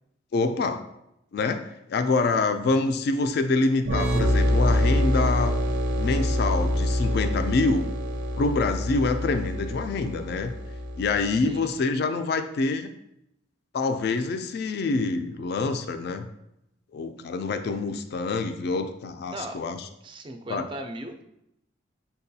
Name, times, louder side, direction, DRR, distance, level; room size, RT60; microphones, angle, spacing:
voice 1, 0.3-0.8 1.3-5.5 6.0-7.8 8.4-10.5 11.0-12.9 13.7-16.3 16.9-19.8 20.5-20.7, left 3 dB, 55° left, 8 dB, 0.3 m, -26 dB
sound 1, 3.8-11.4, left 1 dB, 80° right, 0.5 m, -25 dB
voice 2, 19.3-19.6 20.0-21.2, right 1 dB, 25° right, 5 dB, 0.3 m, -37 dB
6.6 x 2.2 x 2.7 m, 0.82 s
head